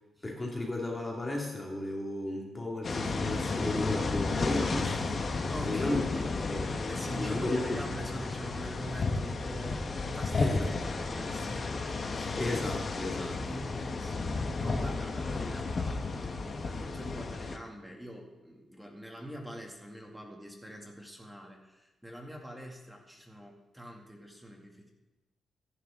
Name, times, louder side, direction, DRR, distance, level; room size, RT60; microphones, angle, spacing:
voice 1, 0.2-6.0 6.4-6.7 7.2-7.8 8.1-8.2 10.3-10.8 12.4-13.6, left 2 dB, 15° left, -1 dB, 2.4 m, -34 dB
sound 1, 2.8-17.6, left 3 dB, 35° left, 1.3 m, -33 dB
voice 2, 5.5-6.3 6.9-12.5 12.9-24.9, equal, 5° right, 0 dB, 2.5 m, -44 dB
25.5 x 11.0 x 3.8 m, 1.0 s
wide cardioid pair, 170°, 0 cm